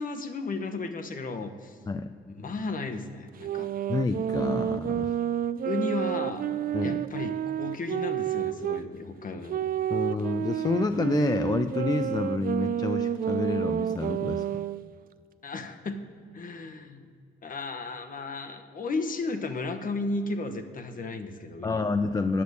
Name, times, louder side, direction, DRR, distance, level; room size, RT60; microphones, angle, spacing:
voice 1, 0.0-1.8 2.3-3.7 5.6-6.4 6.8-9.7 15.4-16.0 16.3-17.1 17.4-21.9, left 3 dB, 45° left, 7 dB, 1.1 m, -34 dB
sound 1, 3.4-8.9 9.5-14.8, right 10 dB, 45° right, 0.4 m, -30 dB
voice 2, 3.9-5.1 6.7-7.0 9.9-14.5 21.6-22.4, left 3 dB, 20° left, 9 dB, 0.4 m, -28 dB
8.7 x 6.8 x 8.0 m, 2.2 s
cardioid pair, 90°, 20 cm